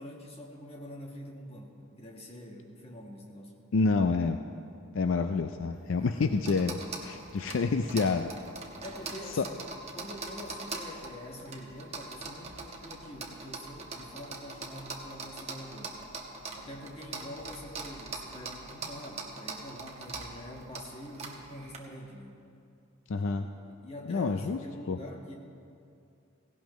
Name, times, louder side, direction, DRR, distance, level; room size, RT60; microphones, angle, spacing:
voice 1, 0.0-3.6 6.0-6.2 8.8-9.5 9.9-16.0 16.5-22.4 23.1-23.3 23.7-25.3, left 1 dB, 25° left, 0 dB, 1.5 m, -45 dB
voice 2, 3.7-4.4 4.9-8.3 9.3-9.5 23.1-23.5 24.1-24.6 24.9-25.0, left 4 dB, 65° left, 7 dB, 0.4 m, -28 dB
sound 1, 5.7-21.8, right 3 dB, 30° right, 1.2 m, -43 dB
17.0 x 17.0 x 3.1 m, 2.5 s
head